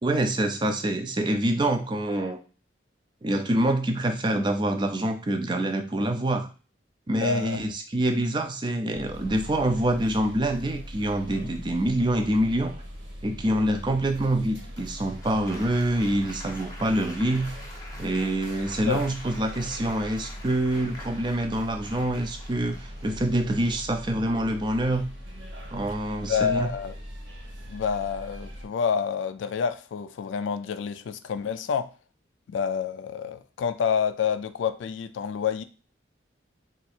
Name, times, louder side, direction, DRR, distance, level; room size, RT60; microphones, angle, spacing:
voice 1, 0.0-2.4 3.2-6.5 7.1-12.7 13.2-17.5 18.0-25.1 25.7-26.7, right 1 dB, 25° right, 0.4 m, -26 dB
voice 2, 7.1-7.6 18.9-19.1 26.2-26.9 27.7-31.9 32.5-35.6, left 7 dB, 90° left, 0.3 m, -28 dB
sound 1, 8.9-28.7, equal, 85° right, 1.3 m, -41 dB
Applause, 14.8-23.6 24.4-24.8, left 1 dB, 20° left, 0.6 m, -46 dB
2.8 x 2.4 x 4.2 m
head